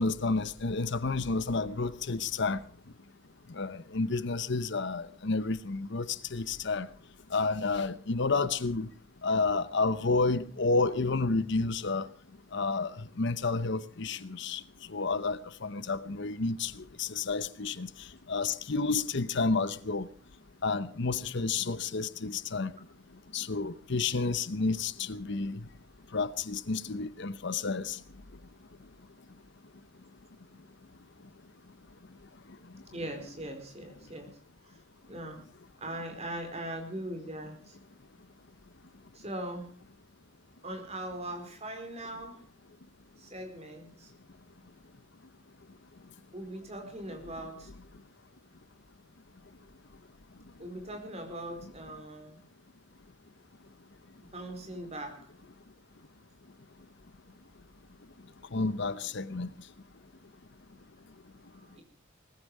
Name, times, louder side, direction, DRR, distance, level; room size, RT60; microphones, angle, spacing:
voice 1, 0.0-2.6 3.5-6.9 7.3-8.9 9.2-12.1 12.5-14.6 14.9-20.1 20.6-22.7 23.3-25.6 26.1-28.0 58.5-59.5, left 3 dB, 60° left, 0.9 m, -30 dB
voice 2, 32.9-34.3 34.7-34.8 35.1-35.4 35.8-37.8 39.1-39.7 40.6-42.4 43.2-44.1 46.3-47.7 50.6-52.4 54.3-55.3 61.6-61.8, right 1 dB, 35° right, 4.5 m, -40 dB
20.0 x 15.0 x 4.8 m
head